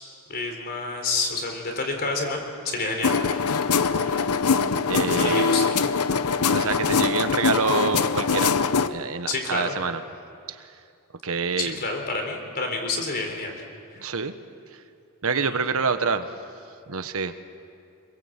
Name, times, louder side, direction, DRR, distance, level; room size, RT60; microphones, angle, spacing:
voice 1, 0.3-3.1 5.2-5.7 9.3-9.8 11.6-13.5 15.5-15.6, left 3 dB, 45° left, 3 dB, 4.0 m, -28 dB
sound 1, 3.0-8.9, left 5 dB, 80° left, 0.9 m, -22 dB
voice 2, 4.9-5.5 6.5-8.6 8.9-10.0 10.5-10.7 11.2-11.8 14.0-14.3 14.7-14.8 15.2-16.3 16.9-17.3, right 5 dB, 70° right, 9 dB, 1.2 m, -27 dB
26.0 x 21.5 x 8.1 m, 2.4 s
head